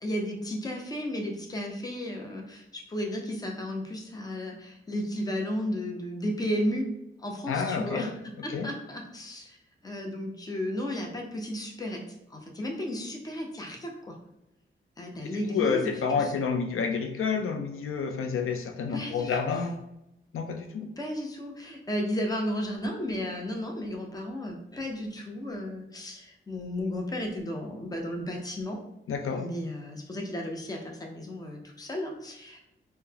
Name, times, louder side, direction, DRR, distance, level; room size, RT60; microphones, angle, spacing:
voice 1, 0.0-6.9 7.2-9.6 9.8-12.0 12.3-14.2 15.0-15.9 16.2-16.3 18.9-19.5 20.8-28.8 29.3-32.6, equal, 15° left, 1 dB, 0.5 m, -34 dB
voice 2, 7.5-8.1 8.5-8.7 15.2-19.8 20.3-20.9 29.1-29.4, left 5 dB, 90° left, 4 dB, 0.4 m, -29 dB
3.8 x 2.1 x 2.7 m, 0.85 s
wide cardioid pair, 135°, 21 cm